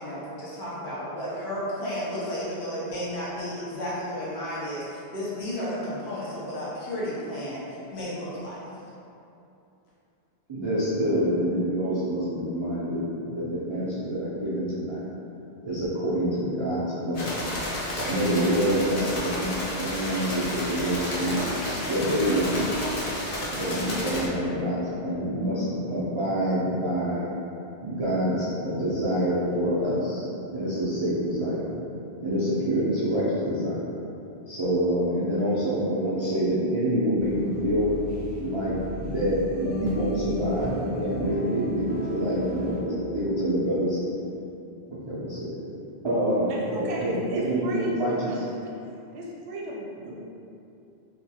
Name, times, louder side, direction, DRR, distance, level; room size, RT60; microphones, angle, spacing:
voice 1, 0.0-8.6, equal, 75° left, -8 dB, 1.1 m, -33 dB
voice 2, 10.5-15.1 15.6-17.4 18.0-21.5 21.9-22.8 23.5-27.3 27.8-31.7 32.2-33.9 34.5-37.9 38.4-44.0 44.9-45.6 46.0-48.4 50.0-50.1, equal, 50° right, -10 dB, 0.3 m, -26 dB
sound 1, 17.1-24.3, left 1 dB, 50° left, 0.5 m, -31 dB
sound 2, 37.2-42.8, left 1 dB, 5° left, 0.6 m, -36 dB
voice 3, 46.5-47.9 48.3-48.4 49.1-50.1, right 2 dB, 80° right, -4 dB, 0.8 m, -37 dB
2.8 x 2.3 x 2.7 m, 2.7 s
omnidirectional pair, 1.1 m